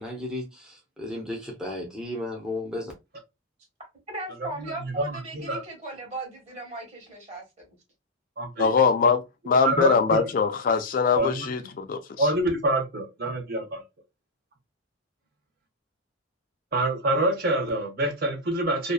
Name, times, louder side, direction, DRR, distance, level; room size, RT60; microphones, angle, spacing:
voice 1, 0.0-2.9, left 1 dB, 5° right, 0.5 m, -34 dB
voice 2, 4.1-7.7, right 2 dB, 35° right, 1.2 m, -38 dB
voice 3, 4.6-5.6 8.4-8.7 9.6-10.3 11.1-11.5 12.2-13.8 16.7-18.9, right 1 dB, 50° right, 0.7 m, -26 dB
voice 4, 8.6-12.3, left 5 dB, 45° left, 0.3 m, -23 dB
2.7 x 2.2 x 2.3 m
head